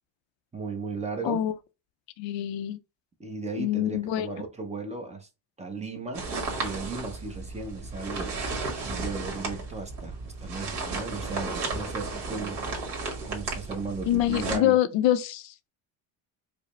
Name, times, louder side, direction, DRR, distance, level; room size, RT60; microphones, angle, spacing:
voice 1, 0.5-1.4 3.2-5.3 5.6-6.3 6.6-8.4 8.8-12.6 13.2-14.8, right 3 dB, 15° right, 0.6 m, -36 dB
voice 2, 2.2-2.8 3.6-4.3 14.1-15.7, left 12 dB, 70° left, 0.6 m, -25 dB
sound 1, 6.1-14.6, right 3 dB, 60° right, 1.6 m, -34 dB
4.9 x 2.1 x 3.1 m
cardioid pair, 125°, 46 cm